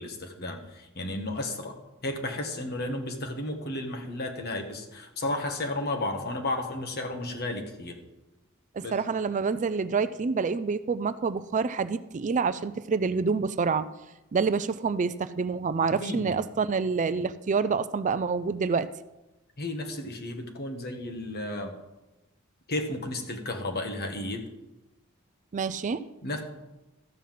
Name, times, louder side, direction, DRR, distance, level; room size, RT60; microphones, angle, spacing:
voice 1, 0.0-1.8 2.0-8.0 8.8-8.9 16.0-16.4 19.6-21.7 22.7-24.4 26.2-26.4, left 1 dB, 50° left, 4 dB, 1.5 m, -33 dB
voice 2, 8.8-13.9 14.3-18.9 25.5-26.0, right 5 dB, 35° right, 13 dB, 0.4 m, -27 dB
13.5 x 5.6 x 7.5 m, 1.0 s
head